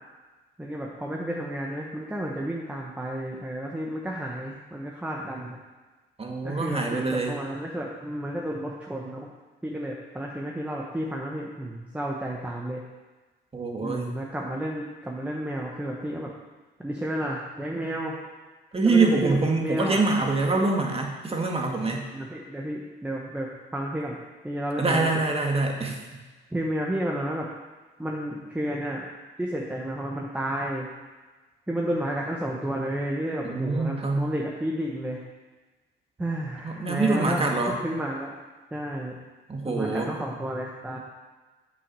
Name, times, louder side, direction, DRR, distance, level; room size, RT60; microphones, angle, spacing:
voice 1, 0.6-5.6 6.4-9.3 9.6-12.8 13.8-16.3 16.8-18.2 18.8-20.1 22.1-24.2 24.4-25.1 26.5-27.5 28.0-29.0 29.4-30.9 31.7-35.2 36.2-37.4 37.8-38.3 38.7-39.2 39.6-41.0, right 1 dB, 5° right, -2 dB, 1.2 m, -31 dB
voice 2, 6.2-7.4 13.5-14.1 18.7-22.1 24.8-26.0 33.4-34.3 36.6-37.8 39.5-40.1, right 3 dB, 30° right, 1 dB, 1.8 m, -25 dB
8.2 x 6.2 x 6.9 m, 1.3 s
cardioid pair, 90°, 20 cm